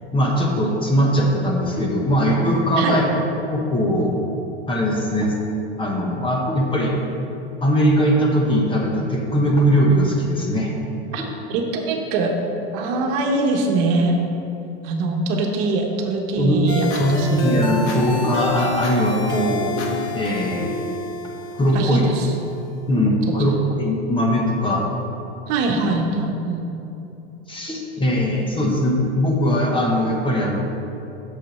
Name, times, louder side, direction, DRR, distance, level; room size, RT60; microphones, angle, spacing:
voice 1, 0.1-3.0 3.5-4.2 4.7-5.3 5.8-6.9 7.6-10.7 11.2-11.3 16.4-16.7 17.0-19.8 20.1-20.7 21.5-22.0 22.9-24.8 27.5-30.6, equal, 15° left, -1 dB, 1.2 m, -20 dB
voice 2, 11.5-12.3 12.7-14.2 14.8-17.9 21.7-22.3 23.3-23.5 25.5-26.6, right 3 dB, 50° right, 2 dB, 1.3 m, -23 dB
sound 1, 16.7-22.7, left 2 dB, 55° left, 1.5 m, -29 dB
7.4 x 6.9 x 5.5 m, 2.9 s
supercardioid pair, 130°, 34 cm